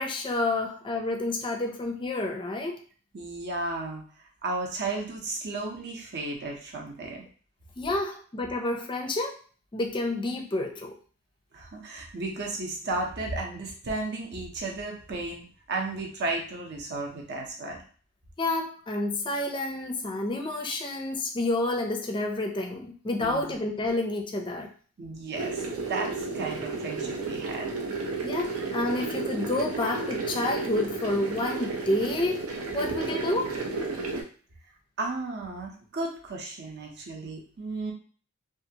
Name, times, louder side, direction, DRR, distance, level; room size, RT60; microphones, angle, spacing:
voice 1, 0.0-2.8 7.8-9.4 9.7-10.9 18.4-24.7 28.2-32.5 32.7-33.6, left 2 dB, 20° left, 2 dB, 0.4 m, -29 dB
voice 2, 3.1-7.2 11.5-17.8 23.2-23.6 25.0-27.7 28.6-28.7 35.0-37.9, right 2 dB, 50° right, 1 dB, 0.7 m, -34 dB
sound 1, 25.3-34.2, right 3 dB, 85° right, 0.6 m, -32 dB
2.7 x 2.4 x 2.7 m, 0.41 s
head